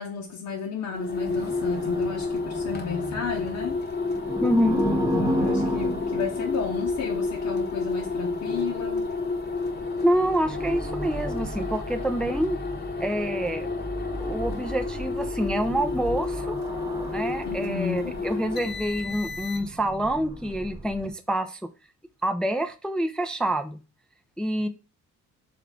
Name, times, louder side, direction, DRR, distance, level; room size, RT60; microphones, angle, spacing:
voice 1, 0.0-3.8 4.7-9.1 17.4-18.2, left 6 dB, 70° left, 0.8 m, -33 dB
sound 1, 0.9-19.9, left 3 dB, 35° left, 0.8 m, -30 dB
sound 2, 1.3-21.1, right 1 dB, 10° right, 0.7 m, -35 dB
voice 2, 4.4-4.8 10.0-12.6 13.0-13.7 14.2-16.6 17.1-21.7 22.2-23.8 24.4-24.7, right 1 dB, 5° left, 0.3 m, -27 dB
3.6 x 3.4 x 3.6 m
cardioid pair, 90°, 30 cm